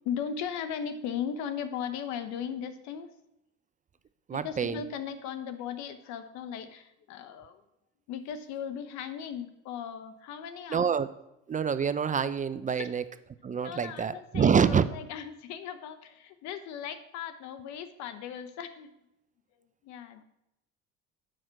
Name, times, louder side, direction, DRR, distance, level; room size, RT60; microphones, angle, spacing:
voice 1, 0.0-3.1 4.3-7.6 8.1-10.8 12.8-12.9 13.5-18.9 19.8-20.2, left 8 dB, 70° left, 11 dB, 1.0 m, -37 dB
voice 2, 4.3-4.8 10.7-11.1 11.5-13.0 13.4-14.9, right 7 dB, 25° right, 13 dB, 0.5 m, -26 dB
7.9 x 6.0 x 6.4 m, 0.86 s
supercardioid pair, 75°, 29 cm